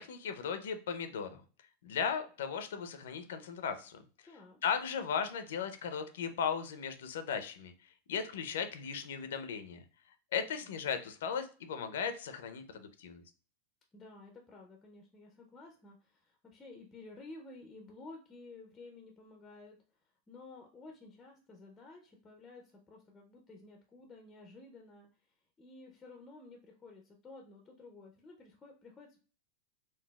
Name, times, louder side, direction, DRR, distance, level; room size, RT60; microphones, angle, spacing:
voice 1, 0.0-1.4 1.8-4.0 4.6-7.7 8.1-9.8 10.3-13.2, left 7 dB, 90° left, 9 dB, 0.5 m, -36 dB
voice 2, 4.2-4.6 10.4-10.5 13.9-19.8 20.3-25.1 25.6-29.3, left 3 dB, 15° left, 2 dB, 0.4 m, -53 dB
3.9 x 2.3 x 2.2 m, 0.38 s
supercardioid pair, 165°, 0 cm